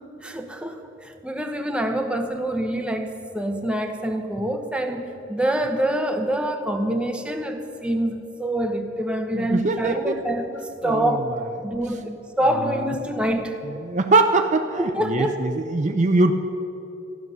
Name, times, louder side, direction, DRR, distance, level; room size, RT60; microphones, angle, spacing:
voice 1, 0.2-11.3 11.6-13.5 14.8-15.4, right 1 dB, 5° right, 5 dB, 0.9 m, -26 dB
voice 2, 9.3-10.2 10.8-11.2 12.7-12.8 13.8-16.3, right 3 dB, 40° right, 6 dB, 0.5 m, -22 dB
13.5 x 12.0 x 6.8 m, 2.9 s
head